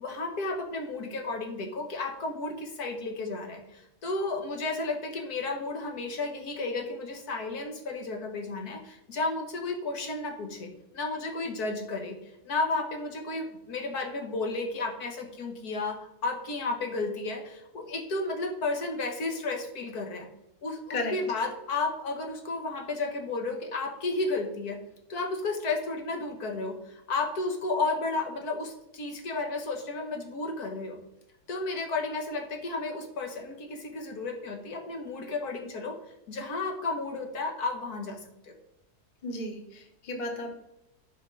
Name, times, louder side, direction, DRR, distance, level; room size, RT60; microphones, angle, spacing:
voice 1, 0.0-12.2 12.5-20.3 20.6-24.8 25.1-31.0 31.5-36.0 36.3-38.5, left 3 dB, 70° left, 2 dB, 1.8 m, -33 dB
voice 2, 39.2-40.5, left 2 dB, 30° left, 3 dB, 1.3 m, -34 dB
11.0 x 5.1 x 5.5 m, 0.89 s
omnidirectional pair, 1.7 m